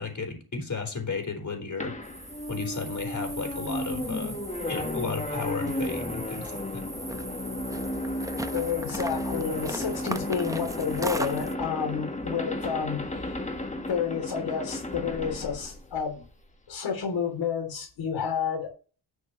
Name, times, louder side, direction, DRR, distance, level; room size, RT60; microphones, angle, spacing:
voice 1, 0.0-1.9 2.5-4.4 4.6-6.8, left 4 dB, 40° left, 3 dB, 4.2 m, -33 dB
sound 1, 1.8-16.5, left 1 dB, 15° left, 1.5 m, -34 dB
sound 2, 2.0-11.6, right 1 dB, 5° right, 0.8 m, -39 dB
voice 2, 8.5-13.4 13.9-16.2 16.7-18.7, left 7 dB, 70° left, 1 dB, 3.2 m, -30 dB
11.0 x 6.5 x 3.1 m, 0.34 s
cardioid pair, 75°, 46 cm